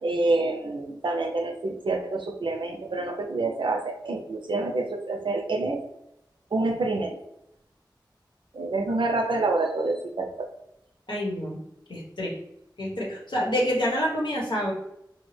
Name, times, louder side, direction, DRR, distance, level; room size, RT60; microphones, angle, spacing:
voice 1, 0.0-5.8 6.5-7.2 8.5-10.5, right 2 dB, 90° right, 4 dB, 0.4 m, -27 dB
voice 2, 11.1-11.6 11.9-12.3 12.8-14.7, equal, 75° left, -3 dB, 1.2 m, -27 dB
4.4 x 2.0 x 3.2 m, 0.82 s
wide cardioid pair, 60°, 8 cm